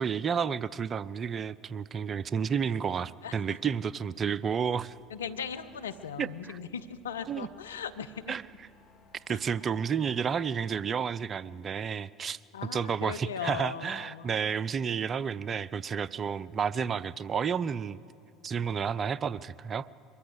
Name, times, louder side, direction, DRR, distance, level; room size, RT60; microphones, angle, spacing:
voice 1, 0.0-4.9 6.2-6.6 7.3-7.5 8.3-8.4 9.3-12.4 12.7-18.0 18.4-19.9, right 7 dB, 35° right, 19 dB, 0.5 m, -31 dB
sound 1, 4.7-10.8, left 3 dB, 50° left, 3.1 m, -60 dB
voice 2, 5.1-8.3 9.3-9.4 12.5-14.3, left 7 dB, 85° left, 10 dB, 0.8 m, -38 dB
23.0 x 14.0 x 8.1 m, 2.5 s
hypercardioid pair, 70°, 0 cm